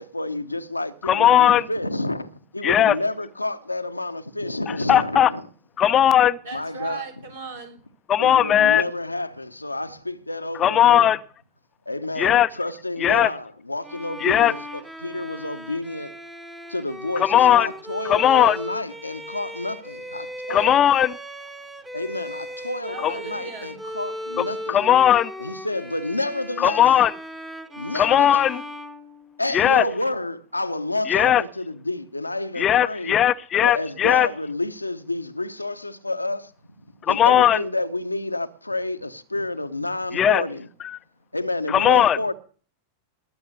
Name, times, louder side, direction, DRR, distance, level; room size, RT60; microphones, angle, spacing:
voice 1, 0.0-5.4 6.5-7.0 8.2-11.1 11.9-16.1 16.7-20.8 21.9-24.9 25.4-26.9 27.7-28.5 29.4-33.2 33.6-36.5 37.1-40.7 41.3-42.3, left 2 dB, 85° left, 0.9 m, -29 dB
voice 2, 1.0-1.6 2.6-2.9 4.9-5.3 5.8-6.4 8.1-8.8 10.6-11.2 12.2-12.5 13.0-13.3 14.2-14.5 17.2-17.7 18.0-18.6 20.5-21.1 23.0-23.1 24.4-25.3 26.6-27.1 27.9-28.6 29.5-29.8 31.1-31.4 32.6-34.3 37.1-37.6 40.1-40.4 40.8-41.0 41.7-42.2, left 10 dB, 30° left, 0.6 m, -17 dB
voice 3, 6.4-7.9 22.9-23.8, right 6 dB, 65° right, 3.9 m, -37 dB
Bowed string instrument, 13.8-29.7, equal, 10° right, 1.4 m, -37 dB
19.5 x 7.1 x 6.8 m
figure-of-eight pair, 90°, 0 cm